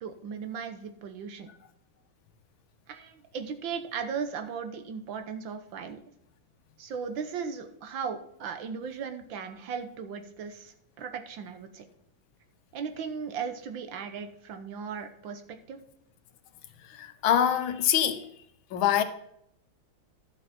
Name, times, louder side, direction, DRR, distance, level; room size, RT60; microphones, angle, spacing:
voice 1, 0.0-1.5 2.9-6.0 6.8-11.8 12.7-15.8, right 6 dB, 80° right, 1.7 m, -37 dB
voice 2, 17.0-18.3 18.7-19.0, left 10 dB, 85° left, 1.6 m, -24 dB
11.5 x 7.1 x 4.2 m
omnidirectional pair, 2.1 m